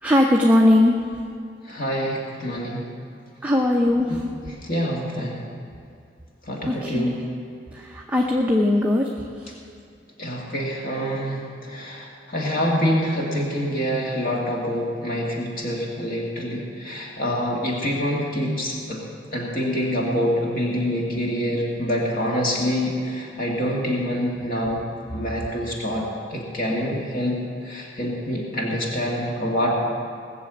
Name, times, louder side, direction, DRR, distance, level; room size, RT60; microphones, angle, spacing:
voice 1, 0.0-1.0 3.4-4.2 6.6-7.2 7.7-9.1 9.4-9.5, left 1 dB, 10° right, -1 dB, 0.8 m, -19 dB
voice 2, 1.7-2.9 4.1-4.2 4.5-5.4 6.4-7.2 10.2-19.0 19.3-24.8 25.1-26.0 26.3-29.7, equal, 50° left, -3 dB, 2.2 m, -26 dB
19.5 x 6.9 x 8.1 m, 2.3 s
head